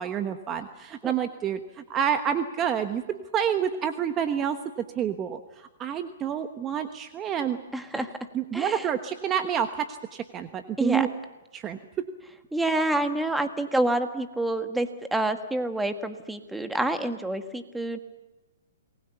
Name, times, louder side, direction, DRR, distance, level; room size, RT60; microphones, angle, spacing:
voice 1, 0.0-7.6 7.9-8.0 8.3-11.1 11.5-12.0, right 8 dB, 20° right, 8 dB, 1.2 m, -28 dB
voice 2, 7.7-8.1 8.5-8.8 10.8-11.1 12.5-18.0, right 1 dB, 5° right, 7 dB, 1.6 m, -27 dB
28.0 x 20.5 x 7.0 m, 1.1 s
hypercardioid pair, 145°, 0 cm